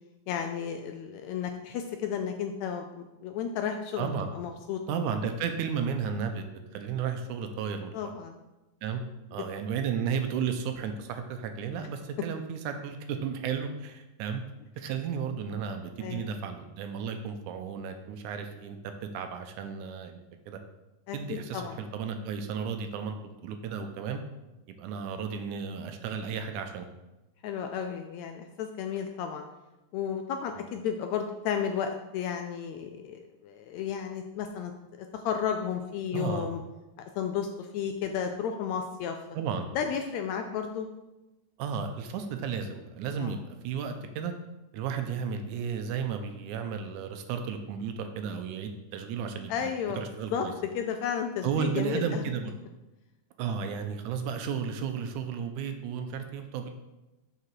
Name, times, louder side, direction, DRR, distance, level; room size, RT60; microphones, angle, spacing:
voice 1, 0.3-4.8 7.9-8.3 16.0-16.3 21.1-21.8 27.4-29.4 29.9-34.7 35.0-36.6 37.2-39.2 39.7-40.9 43.2-43.3 49.5-50.0 50.3-50.5 50.7-52.2 53.5-53.6, left 7 dB, 80° left, 5 dB, 1.6 m, -33 dB
voice 2, 4.0-4.3 4.9-6.4 6.7-7.9 8.8-9.0 9.3-14.4 14.8-18.8 19.1-20.2 20.5-20.6 21.1-23.2 23.4-24.2 24.7-26.9 30.6-30.7 36.1-36.5 39.3-39.7 41.6-44.3 44.7-50.5 51.4-52.5 53.4-56.7, right 6 dB, 85° right, 6 dB, 2.1 m, -33 dB
6.7 x 5.8 x 4.6 m, 1.0 s
omnidirectional pair, 3.6 m